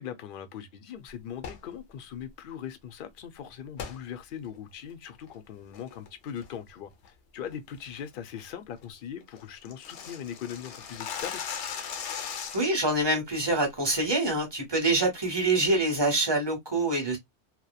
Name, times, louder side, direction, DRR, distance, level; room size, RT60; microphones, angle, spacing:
voice 1, 0.0-6.9 7.3-11.4, left 9 dB, 60° left, 0.7 m, -40 dB
sound 1, 1.3-1.7 3.8-4.0 4.5-4.6 5.1-5.4 5.7-6.1 6.4-6.7 7.0-7.1 7.5-7.8 8.1-8.2 8.5-8.6 8.8-8.9 9.2-12.8, left 7 dB, 90° left, 0.9 m, -38 dB
voice 2, 12.5-17.2, right 2 dB, 25° right, 0.9 m, -25 dB
2.8 x 2.1 x 2.2 m
omnidirectional pair, 1.1 m